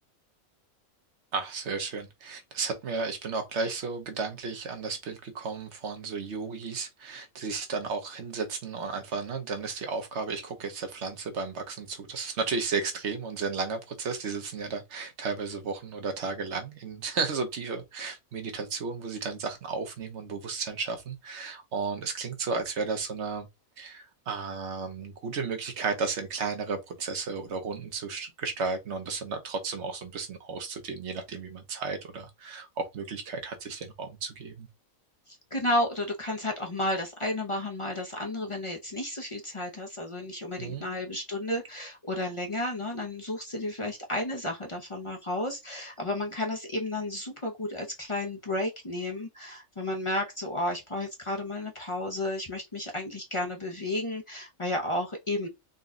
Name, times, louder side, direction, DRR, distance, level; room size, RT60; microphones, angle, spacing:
voice 1, 1.3-23.5 23.8-34.7 40.6-40.9, right 4 dB, 55° right, 1.1 m, -33 dB
voice 2, 35.3-55.5, left 1 dB, 35° left, 0.5 m, -32 dB
4.0 x 2.3 x 3.7 m
omnidirectional pair, 1.5 m